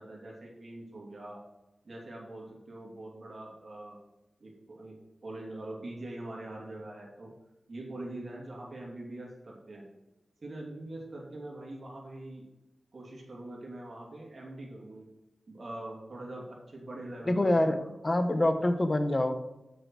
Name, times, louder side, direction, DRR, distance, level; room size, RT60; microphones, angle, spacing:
voice 1, 0.0-1.4 1.8-4.0 4.4-7.3 7.7-9.9 10.4-12.5 12.9-15.1 15.5-17.9, right 1 dB, 50° right, -2 dB, 2.8 m, -43 dB
voice 2, 17.3-17.8 18.0-19.4, left 1 dB, 30° left, 8 dB, 0.9 m, -25 dB
6.9 x 6.7 x 6.1 m, 0.97 s
wide cardioid pair, 95°, 0 cm